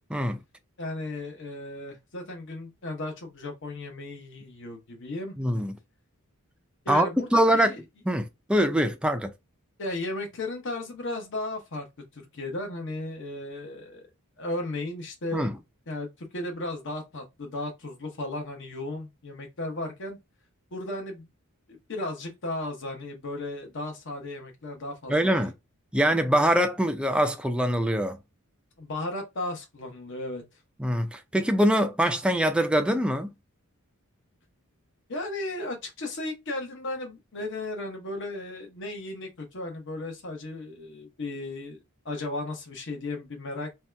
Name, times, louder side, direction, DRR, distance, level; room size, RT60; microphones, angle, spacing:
voice 1, 0.8-5.3 6.8-7.8 9.8-14.0 14.4-15.5 15.9-20.2 20.7-21.3 21.7-25.4 28.8-30.4 35.1-41.8 42.0-43.7, left 2 dB, 60° left, 0.9 m, -35 dB
voice 2, 5.4-5.8 6.9-7.7 8.1-9.3 15.3-15.6 25.1-25.5 25.9-28.2 30.8-33.3, equal, 5° right, 0.3 m, -24 dB
2.7 x 2.2 x 3.2 m
head